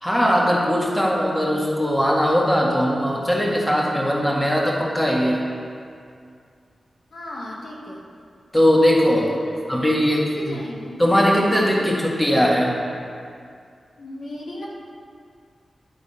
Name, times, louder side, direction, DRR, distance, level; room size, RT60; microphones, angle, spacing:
voice 1, 0.0-5.4 8.5-9.3 9.7-10.6 11.0-12.7, equal, 15° left, -3 dB, 1.9 m, -19 dB
voice 2, 7.1-8.0 9.1-11.0 11.4-11.7 14.0-14.7, left 1 dB, 75° left, -4 dB, 1.5 m, -36 dB
10.5 x 4.0 x 5.5 m, 2.3 s
cardioid pair, 60°, 0 cm